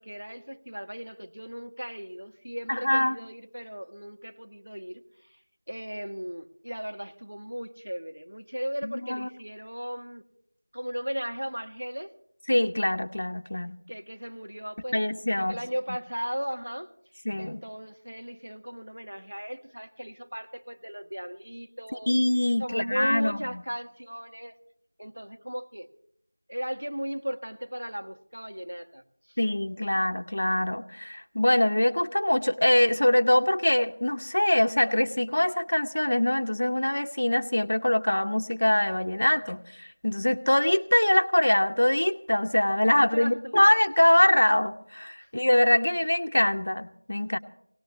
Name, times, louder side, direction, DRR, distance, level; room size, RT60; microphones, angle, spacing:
voice 1, 0.0-5.0 5.3-5.4 5.7-10.2 10.7-12.1 13.9-15.0 15.3-16.9 17.4-22.1 22.6-24.5 25.0-25.9 26.5-29.0 29.3-29.4 43.1-43.6 45.2-45.3, equal, 85° right, 5 dB, 1.8 m, -36 dB
voice 2, 2.7-3.2 8.8-9.3 12.5-13.8 14.9-15.6 17.2-17.6 22.1-23.6 29.4-47.4, left 1 dB, 35° left, 7 dB, 0.7 m, -23 dB
20.5 x 18.5 x 3.2 m, 0.69 s
figure-of-eight pair, 180°, 0 cm